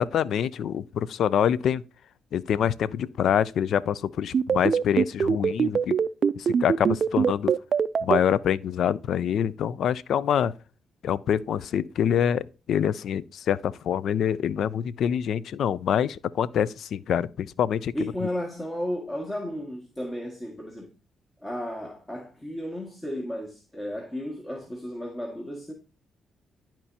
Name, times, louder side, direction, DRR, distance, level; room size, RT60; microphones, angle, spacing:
voice 1, 0.0-1.8 2.3-6.0 6.4-7.5 8.0-10.5 11.0-17.9, left 9 dB, 70° left, 0.4 m, -25 dB
sound 1, 4.3-8.2, right 6 dB, 55° right, 0.3 m, -22 dB
voice 2, 17.9-20.9 21.4-25.7, equal, 20° left, 1.8 m, -33 dB
12.0 x 4.4 x 2.8 m
supercardioid pair, 50°, 0 cm